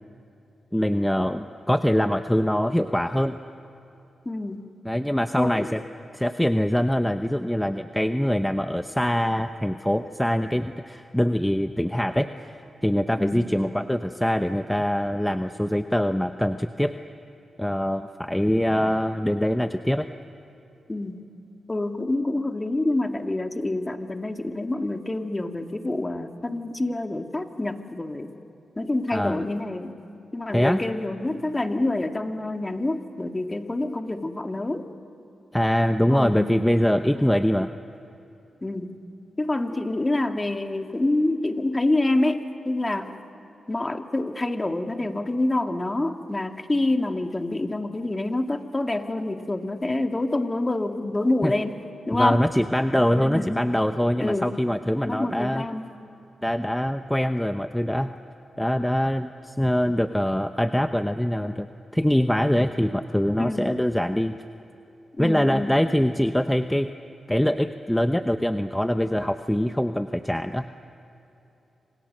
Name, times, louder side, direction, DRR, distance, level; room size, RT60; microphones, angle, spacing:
voice 1, 0.7-3.4 4.8-5.8 6.1-12.3 12.8-17.0 17.6-20.1 29.1-29.4 30.5-30.8 35.5-37.7 51.4-51.5 52.1-55.6 56.4-58.1 58.6-61.7 61.9-64.4 65.2-66.9 67.3-70.6, equal, 5° left, 9 dB, 0.9 m, -23 dB
voice 2, 4.3-4.7 5.4-5.7 13.2-13.5 20.9-21.2 21.7-28.3 28.8-30.1 30.3-34.9 36.1-36.6 37.1-37.2 38.6-39.0 39.4-43.1 43.7-51.8 52.1-52.5 53.3-53.6 54.2-54.6 55.0-55.9 63.4-63.8 65.2-65.8, left 2 dB, 25° left, 5 dB, 2.0 m, -27 dB
27.0 x 26.5 x 6.7 m, 3.0 s
supercardioid pair, 45°, 0 cm